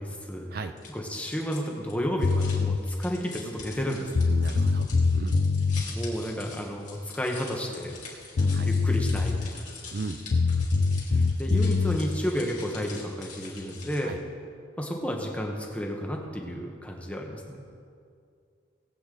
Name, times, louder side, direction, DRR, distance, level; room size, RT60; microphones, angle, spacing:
voice 1, 0.0-0.5 0.9-4.3 5.8-8.0 8.4-9.6 11.4-14.1 14.8-17.6, equal, 5° left, 1 dB, 1.2 m, -32 dB
sound 1, 0.8-14.2, left 4 dB, 40° left, 2.7 m, -45 dB
sound 2, 2.2-2.8 3.8-3.9 4.1-5.8 8.0-8.1 8.4-9.6 10.3-12.0, left 4 dB, 65° left, 0.4 m, -24 dB
voice 2, 4.3-5.4 8.5-8.7 9.9-10.2 14.0-14.2, right 3 dB, 50° right, 8 dB, 0.4 m, -35 dB
18.5 x 8.4 x 3.9 m, 2.3 s
head